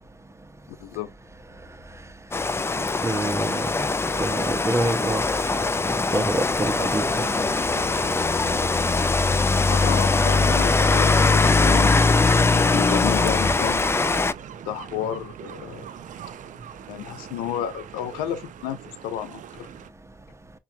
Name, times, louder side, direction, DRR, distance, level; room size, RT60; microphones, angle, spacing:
Rain, 2.3-14.3, left 3 dB, 15° left, 0.3 m, -21 dB
voice 1, 3.0-3.7 4.2-5.2 5.9-7.3, right 1 dB, 20° right, 0.7 m, -26 dB
sound 1, 6.6-19.9, right 9 dB, 60° right, 0.4 m, -41 dB
voice 2, 9.7-12.1 12.5-13.8 14.6-15.8 16.9-19.7, left 11 dB, 85° left, 0.4 m, -31 dB
5.6 x 2.3 x 2.6 m
hypercardioid pair, 45°, 15 cm